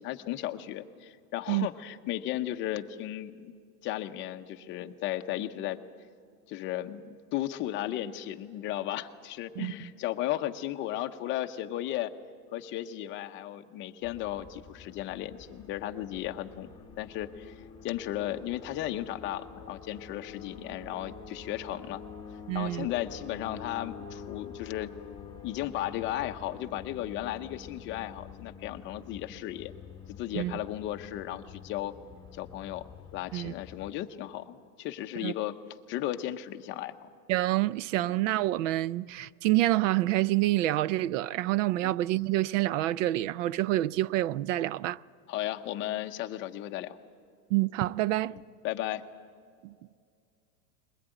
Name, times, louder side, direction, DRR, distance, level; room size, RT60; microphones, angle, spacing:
voice 1, 0.0-3.5 3.8-5.8 6.5-12.1 12.5-16.7 17.0-17.5 17.8-22.0 22.5-24.9 25.4-29.7 30.2-31.9 32.3-35.6 35.9-37.0 38.0-38.2 41.8-41.9 45.3-47.0 48.6-49.0, left 13 dB, 25° left, 0.7 m, -35 dB
sound 1, 14.0-33.9, left 6 dB, 10° left, 1.5 m, -47 dB
voice 2, 22.5-22.9 30.3-30.5 33.3-33.5 35.2-35.3 37.3-45.0 47.5-48.4 49.6-49.7, right 16 dB, 55° right, 0.5 m, -27 dB
22.0 x 20.0 x 9.0 m
supercardioid pair, 160°, 47 cm